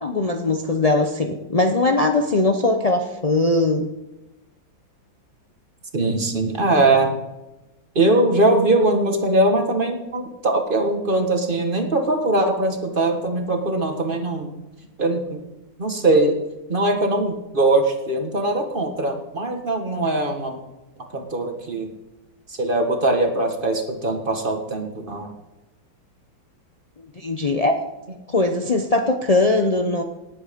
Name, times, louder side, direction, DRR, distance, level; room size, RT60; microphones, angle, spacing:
voice 1, 0.0-3.9 27.2-27.7 28.3-30.0, left 2 dB, 70° left, 4 dB, 0.3 m, -20 dB
voice 2, 5.9-7.1 7.9-14.5 15.0-15.4 15.8-16.4 16.7-20.6 21.1-21.9 22.6-25.3, right 2 dB, 30° right, 4 dB, 1.5 m, -21 dB
18.5 x 8.1 x 5.2 m, 1.0 s
omnidirectional pair, 2.1 m